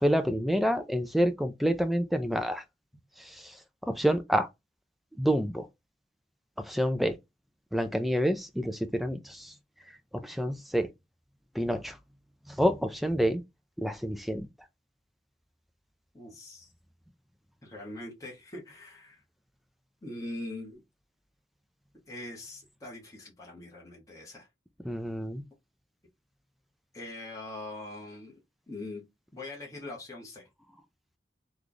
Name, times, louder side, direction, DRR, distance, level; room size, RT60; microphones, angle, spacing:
voice 1, 0.0-2.6 3.9-4.5 5.2-5.7 6.7-7.1 7.7-9.5 10.1-10.9 11.6-11.9 12.6-13.4 13.8-14.5 24.9-25.4, equal, ahead, 0.4 m, -27 dB
voice 2, 16.1-16.7 17.6-19.2 20.0-20.8 22.1-24.5 26.9-28.4 28.7-29.0 29.3-30.5, left 2 dB, 20° left, 1.0 m, -42 dB
3.2 x 2.3 x 3.9 m
head